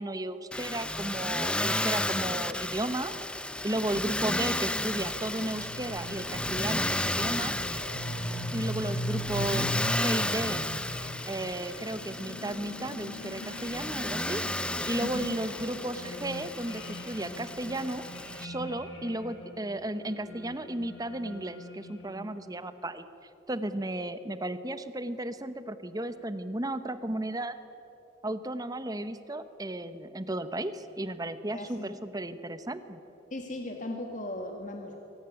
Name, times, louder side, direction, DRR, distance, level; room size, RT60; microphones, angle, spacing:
voice 1, 0.0-3.1 3.6-7.5 8.5-10.6 11.3-14.4 14.9-18.1 18.4-23.0 23.5-27.5 28.2-33.0, right 1 dB, 20° right, 12 dB, 1.0 m, -34 dB
Motor vehicle (road), 0.5-18.5, left 1 dB, 5° left, 0.7 m, -33 dB
sound 1, 4.6-22.5, equal, 80° left, 4.2 m, -40 dB
voice 2, 15.0-15.4 31.5-32.0 33.3-35.0, left 1 dB, 45° left, 3 dB, 1.8 m, -37 dB
23.0 x 18.0 x 9.9 m, 3.0 s
head